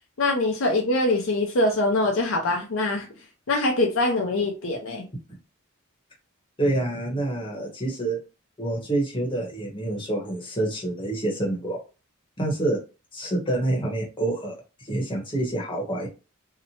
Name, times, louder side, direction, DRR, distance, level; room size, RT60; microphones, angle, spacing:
voice 1, 0.2-3.1 3.5-5.0, left 2 dB, 60° left, 0.5 m, -23 dB
voice 2, 6.6-8.2 8.6-11.8 12.4-12.8 13.1-16.1, right 2 dB, 25° left, 0.8 m, -27 dB
2.8 x 2.1 x 2.8 m
head